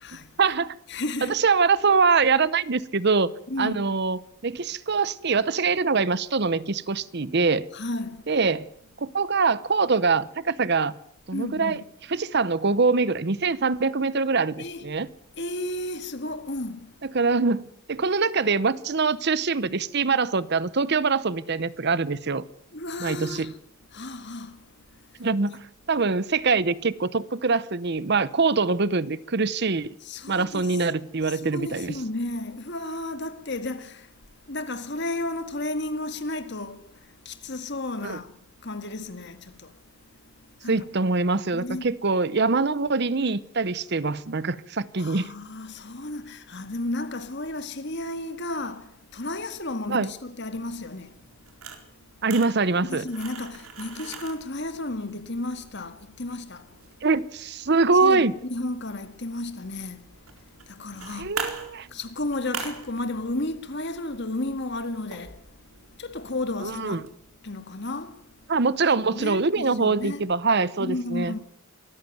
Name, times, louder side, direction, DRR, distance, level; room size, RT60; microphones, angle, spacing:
voice 1, 0.4-0.7 1.3-3.3 3.6-7.7 8.3-8.7 9.0-10.9 11.3-11.8 12.1-15.1 17.0-22.4 23.0-23.5 25.2-29.9 30.3-32.0 38.0-38.2 40.7-45.3 49.9-50.1 52.2-53.0 57.0-58.3 61.2-61.9 66.6-67.0 68.5-71.3, right 4 dB, 50° right, 0.8 m, -24 dB
voice 2, 0.9-1.4 3.5-3.9 7.7-8.2 11.3-11.8 14.6-14.9 15.4-16.9 22.7-23.6 23.9-24.6 30.0-30.9 31.2-34.1 34.5-36.8 37.3-38.3 38.6-39.7 40.6-40.9 41.5-41.9 45.0-51.1 52.8-56.7 58.0-60.0 60.7-61.3 61.9-65.4 66.0-67.0 67.4-68.2 69.0-70.2 70.8-71.4, left 2 dB, 55° left, 2.0 m, -33 dB
sound 1, 50.5-67.1, right 5 dB, 85° right, 4.3 m, -43 dB
24.0 x 14.5 x 9.3 m
head